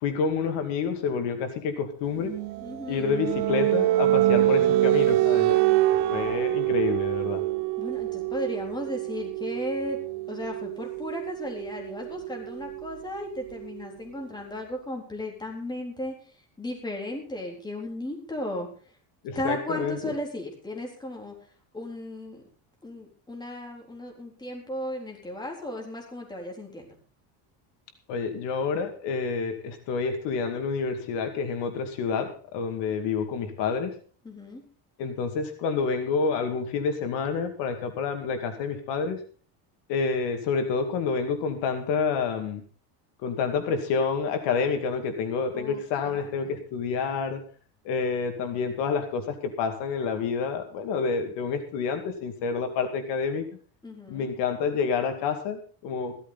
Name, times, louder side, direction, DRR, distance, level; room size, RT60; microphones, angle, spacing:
voice 1, 0.0-2.4 2.9-5.6 5.9-7.4 19.2-20.1 28.1-33.9 35.0-39.2 39.9-42.6 43.2-47.4 47.8-53.5 54.1-56.2, left 5 dB, 65° left, 6 dB, 2.4 m, -28 dB
sound 1, 2.2-13.7, right 15 dB, 60° right, 0.9 m, -26 dB
voice 2, 2.6-3.1 7.8-10.0 10.3-16.1 16.6-18.7 19.3-21.3 21.7-22.4 22.8-26.9 34.2-34.6 45.5-46.6 53.8-54.3, left 1 dB, 10° left, 0 dB, 3.8 m, -35 dB
15.0 x 13.5 x 4.1 m, 0.40 s
cardioid pair, 160°, 45 cm